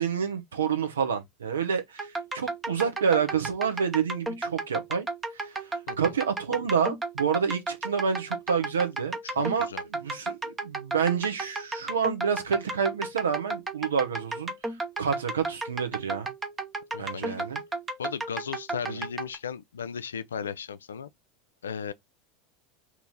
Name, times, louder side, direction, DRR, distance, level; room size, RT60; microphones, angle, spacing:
voice 1, 0.0-5.1 5.3-5.6 6.0-14.5 15.0-16.3 17.0-17.6 18.8-19.0, right 6 dB, 75° right, 0.8 m, -28 dB
sound 1, 2.0-19.4, right 3 dB, 20° right, 0.8 m, -34 dB
voice 2, 9.2-9.8 16.9-17.4 18.0-21.1 21.6-21.9, left 7 dB, 75° left, 0.3 m, -36 dB
2.9 x 2.8 x 3.8 m
figure-of-eight pair, 80°, 0 cm